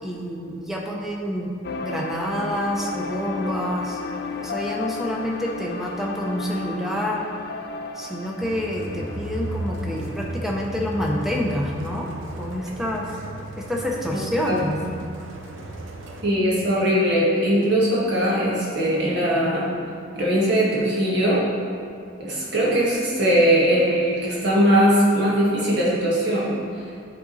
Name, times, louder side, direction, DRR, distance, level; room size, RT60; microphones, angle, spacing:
voice 1, 0.0-1.5 1.8-4.0 4.4-7.3 8.0-13.1 13.6-14.8, equal, ahead, -2 dB, 0.7 m, -27 dB
sound 1, 1.6-12.1 12.5-12.6 13.1-13.2, left 4 dB, 55° left, 0.5 m, -34 dB
sound 2, 8.4-16.2, right 1 dB, 75° right, 0.8 m, -35 dB
voice 2, 14.4-14.9 16.2-19.7 20.1-21.5 22.2-26.5, equal, 55° right, -6 dB, 1.7 m, -20 dB
9.2 x 3.8 x 4.1 m, 2.4 s
head